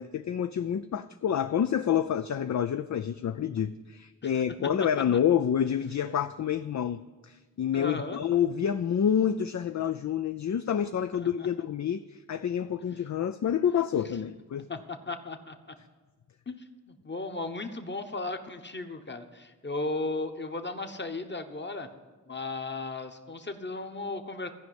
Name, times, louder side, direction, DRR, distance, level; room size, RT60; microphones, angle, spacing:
voice 1, 0.0-14.7, left 9 dB, 50° left, 10 dB, 0.4 m, -28 dB
voice 2, 7.7-8.2 11.1-11.5 14.5-15.7 16.5-21.9 22.3-24.5, left 2 dB, 30° left, 7 dB, 1.1 m, -36 dB
14.0 x 5.2 x 9.2 m, 1.3 s
cardioid pair, 45°, 36 cm